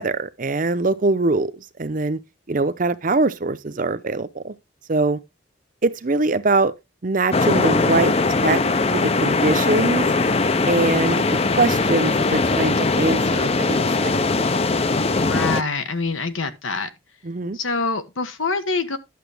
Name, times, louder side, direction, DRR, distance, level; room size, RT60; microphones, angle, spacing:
voice 1, 0.0-2.2 2.5-4.6 4.9-5.2 5.8-6.7 7.0-8.6 8.9-10.1 10.7-11.2 11.6-14.1 17.2-17.6, right 3 dB, 40° right, 0.7 m, -22 dB
sound 1, 7.3-15.6, left 3 dB, 30° left, 0.5 m, -20 dB
voice 2, 15.1-16.9 17.5-19.0, left 4 dB, 85° left, 1.3 m, -25 dB
11.0 x 6.9 x 3.4 m
head